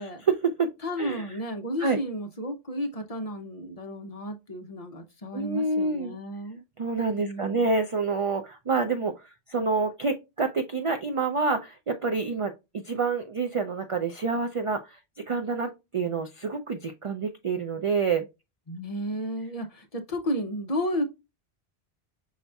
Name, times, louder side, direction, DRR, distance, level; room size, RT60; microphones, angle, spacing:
voice 1, 0.0-0.7 1.0-1.3 1.8-2.0 5.3-6.2 6.8-15.0 15.3-18.3, right 4 dB, 50° right, 0.4 m, -28 dB
voice 2, 0.8-6.6 7.2-7.7 18.7-21.0, equal, 40° left, 0.7 m, -33 dB
5.6 x 4.0 x 2.2 m
omnidirectional pair, 1.1 m